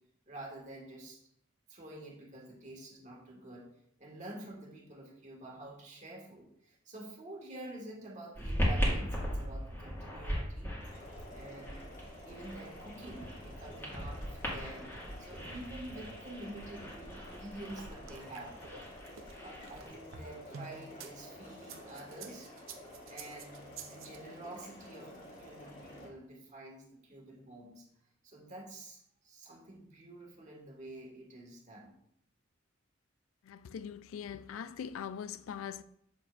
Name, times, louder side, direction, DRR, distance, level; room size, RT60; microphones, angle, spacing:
voice 1, 0.3-1.2 1.7-3.7 4.0-10.8 11.3-11.9 12.2-14.9 15.2-18.6 19.4-22.5 23.1-27.9 28.2-31.9, right 1 dB, 40° right, 1.6 m, -48 dB
sound 1, 8.3-19.9, equal, 10° left, 1.7 m, -38 dB
sound 2, 10.8-26.1, left 1 dB, 45° left, 1.8 m, -51 dB
sound 3, 17.8-21.1 21.6-24.2, right 6 dB, 80° right, 0.6 m, -49 dB
voice 2, 33.4-35.8, left 8 dB, 90° left, 0.3 m, -42 dB
7.0 x 6.3 x 2.4 m
head